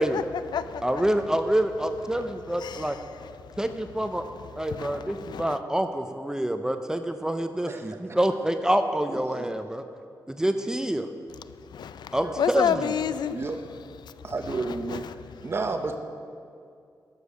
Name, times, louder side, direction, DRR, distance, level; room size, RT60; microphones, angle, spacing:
voice 1, 0.0-1.0 2.2-2.3 2.6-3.6 4.2-4.3 4.7-5.6 11.7-14.1 14.5-15.5, left 7 dB, 80° left, 14 dB, 0.4 m, -32 dB
voice 2, 0.8-3.0 3.6-4.3 4.6-9.8 10.3-11.1 12.1-12.8, right 1 dB, 10° right, 7 dB, 0.4 m, -27 dB
voice 3, 7.7-8.0 9.1-9.5 13.3-13.6 14.2-15.1 15.4-16.0, right 3 dB, 35° right, 6 dB, 0.8 m, -31 dB
12.0 x 6.6 x 6.3 m, 2.4 s
wide cardioid pair, 165°, 7 cm